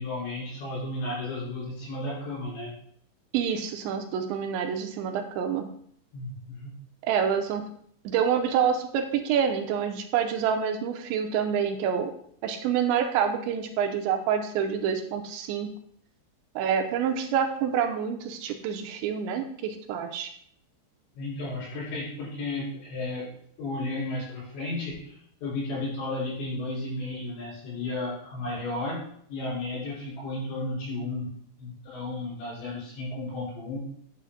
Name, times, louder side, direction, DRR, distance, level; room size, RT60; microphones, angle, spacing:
voice 1, 0.0-2.7 6.1-6.7 21.2-29.0 29.3-31.3 31.6-33.8, left 2 dB, 70° left, -5 dB, 6.5 m, -33 dB
voice 2, 3.3-5.7 7.0-7.6 8.0-12.1 12.4-15.7 16.6-20.3, right 7 dB, 85° right, 5 dB, 2.9 m, -27 dB
12.0 x 8.5 x 2.2 m, 0.64 s
omnidirectional pair, 5.3 m